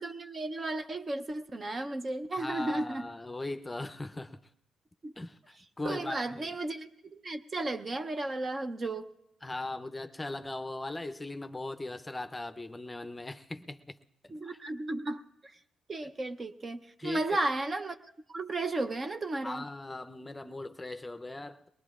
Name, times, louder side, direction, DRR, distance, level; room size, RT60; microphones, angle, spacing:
voice 1, 0.0-3.1 5.0-5.1 5.8-9.1 14.3-15.2 15.9-18.0 18.3-19.6, right 2 dB, 35° right, 0.7 m, -34 dB
voice 2, 2.4-4.4 5.2-6.6 9.4-14.0 14.2-14.6 17.0-17.4 19.4-21.7, left 2 dB, 20° left, 0.6 m, -39 dB
23.0 x 19.0 x 2.4 m
supercardioid pair, 65°, 0 cm